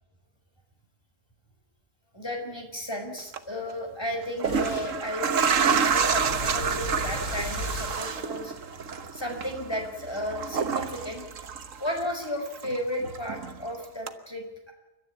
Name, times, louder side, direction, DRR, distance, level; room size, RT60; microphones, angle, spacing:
voice 1, 2.1-8.5 9.1-11.2 11.8-14.7, equal, 15° left, 2 dB, 5.4 m, -34 dB
sound 1, 3.2-3.4 4.2-12.3 12.6-13.6 14.1-14.2, right 6 dB, 55° right, 1.5 m, -28 dB
Boom, 4.4-8.8, left 1 dB, 60° left, 3.5 m, -37 dB
29.5 x 13.5 x 8.6 m, 1.1 s
omnidirectional pair, 1.7 m